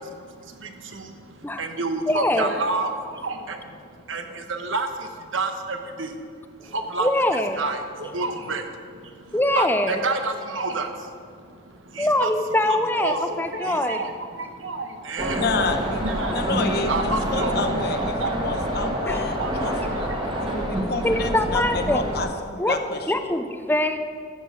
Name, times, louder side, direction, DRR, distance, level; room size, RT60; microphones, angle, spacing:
voice 1, 0.0-12.3 12.7-15.5 16.0-16.4 16.9-21.0, right 3 dB, 80° right, 6 dB, 1.2 m, -30 dB
voice 2, 2.1-2.5 7.0-7.6 9.3-10.0 12.0-14.0 19.1-19.3 21.0-22.0 22.6-22.8 23.1-24.0, left 1 dB, 10° left, 8 dB, 0.5 m, -23 dB
sound 1, 15.2-22.2, equal, 25° right, 1.6 m, -27 dB
voice 3, 15.4-16.0 16.3-20.1 20.4-23.3, left 3 dB, 50° left, 6 dB, 1.0 m, -29 dB
13.0 x 7.5 x 6.8 m, 2.2 s
head